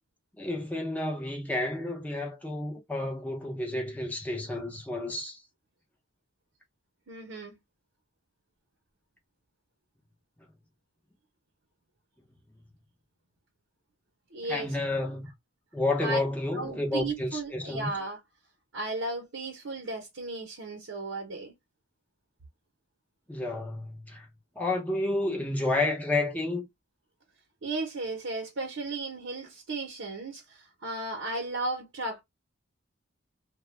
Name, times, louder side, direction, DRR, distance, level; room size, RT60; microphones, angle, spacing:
voice 1, 0.3-5.4 14.5-15.3 15.7-17.9 23.3-24.3 24.6-26.7, left 2 dB, 10° left, 0.7 m, -30 dB
voice 2, 7.1-7.6 14.3-14.7 16.0-16.2 16.5-18.2 18.7-21.5 27.6-32.2, right 2 dB, 75° right, 0.8 m, -35 dB
2.2 x 2.2 x 3.1 m
head